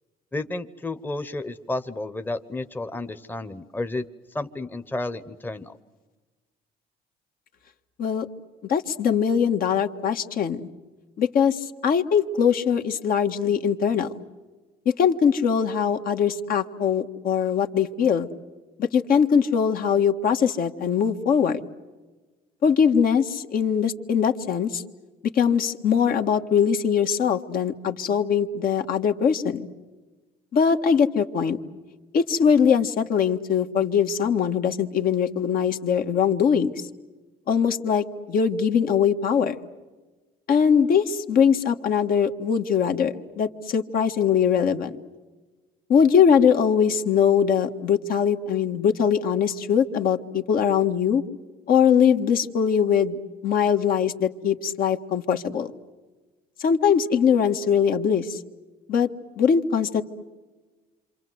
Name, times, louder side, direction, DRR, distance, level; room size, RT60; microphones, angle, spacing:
voice 1, 0.3-4.1 4.3-5.7, left 2 dB, 10° left, 9 dB, 1.0 m, -31 dB
voice 2, 8.6-10.7 11.2-14.2 14.8-18.3 18.8-21.6 22.6-24.8 25.2-29.7 30.5-31.6 32.1-36.9 37.5-39.5 40.5-45.0 45.9-51.2 51.7-55.7 56.6-58.4 58.9-59.1 59.4-60.0, left 7 dB, 60° left, 6 dB, 1.6 m, -21 dB
27.5 x 26.5 x 7.9 m, 1.2 s
cardioid pair, 110°, 17 cm